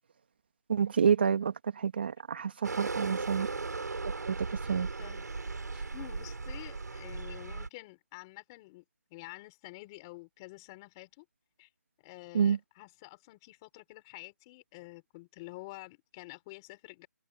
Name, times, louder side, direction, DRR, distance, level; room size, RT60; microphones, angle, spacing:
voice 1, 0.7-1.5 1.8-3.5 4.2-4.9 12.3-12.6, right 7 dB, 35° right, 2.1 m, -28 dB
sound 1, 2.6-7.7, right 3 dB, 75° right, 7.9 m, -37 dB
voice 2, 5.9-8.8 9.1-11.3 11.6-11.7 12.0-17.1, left 22 dB, 15° left, 5.9 m, -49 dB
hypercardioid pair, 175°, 9 cm